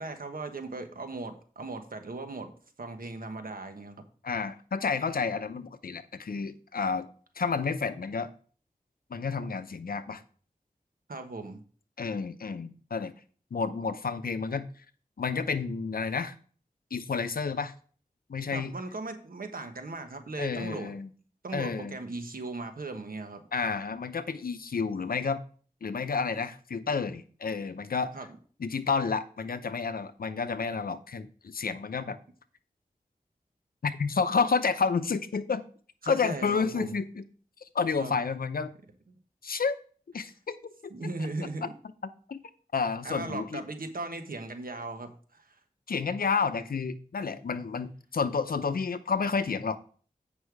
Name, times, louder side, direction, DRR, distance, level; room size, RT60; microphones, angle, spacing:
voice 1, 0.0-4.1 11.1-11.6 18.5-20.9 21.4-23.4 28.1-28.3 36.0-36.9 38.0-38.1 40.9-41.7 43.0-45.6, right 3 dB, 80° right, 6 dB, 1.2 m, -38 dB
voice 2, 4.2-7.1 7.4-8.3 9.1-10.2 12.0-13.1 13.5-14.7 15.2-16.4 16.9-17.7 18.3-18.7 20.4-21.1 21.5-22.0 23.5-25.4 25.8-28.1 28.6-32.2 33.8-35.6 36.1-37.2 37.7-38.7 39.4-39.8 40.1-40.6 42.0-42.4 42.7-43.6 45.9-49.8, left 5 dB, 90° left, 11 dB, 0.6 m, -30 dB
8.3 x 5.5 x 4.7 m, 0.43 s
wide cardioid pair, 65°, 15 cm